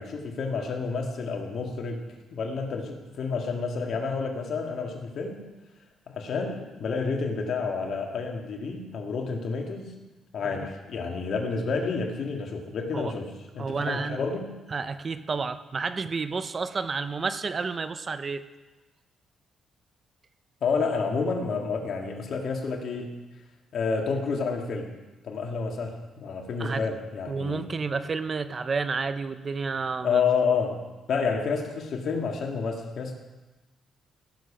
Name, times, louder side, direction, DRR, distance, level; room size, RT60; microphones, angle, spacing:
voice 1, 0.0-2.0 2.3-5.5 6.1-9.9 10.3-14.5 20.6-23.2 23.7-25.0 25.2-27.7 30.0-33.1, left 5 dB, 60° left, 2 dB, 1.9 m, -29 dB
voice 2, 13.6-14.2 14.7-18.4 26.6-26.8 27.3-30.2, right 4 dB, 40° right, 12 dB, 0.7 m, -30 dB
16.5 x 7.2 x 5.0 m, 1.2 s
cardioid pair, 90°, 0 cm